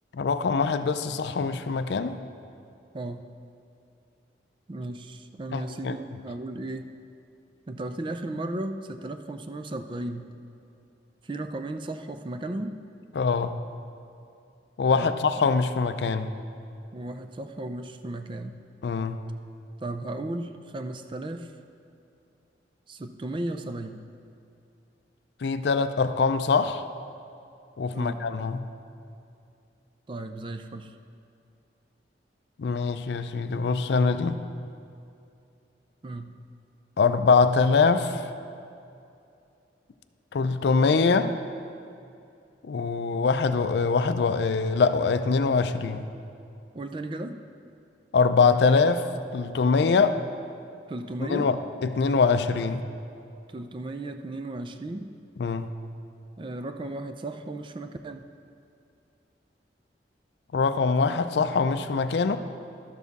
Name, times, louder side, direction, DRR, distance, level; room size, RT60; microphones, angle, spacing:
voice 1, 0.1-2.2 5.5-6.0 13.2-13.6 14.8-16.3 18.8-19.2 25.4-26.8 27.8-28.7 32.6-34.4 37.0-38.3 40.3-41.3 42.6-46.0 48.1-50.1 51.2-52.8 55.4-55.7 60.5-62.4, left 4 dB, 70° left, 11 dB, 0.4 m, -23 dB
voice 2, 2.9-3.3 4.7-6.9 7.7-10.3 11.2-12.8 14.9-15.5 16.9-18.6 19.8-21.5 22.9-24.0 27.9-28.3 30.1-30.9 36.0-36.3 46.7-47.4 49.9-50.2 50.9-51.5 53.5-55.1 56.4-58.2, right 2 dB, 25° right, 8 dB, 0.4 m, -35 dB
12.0 x 7.2 x 4.0 m, 2.6 s
head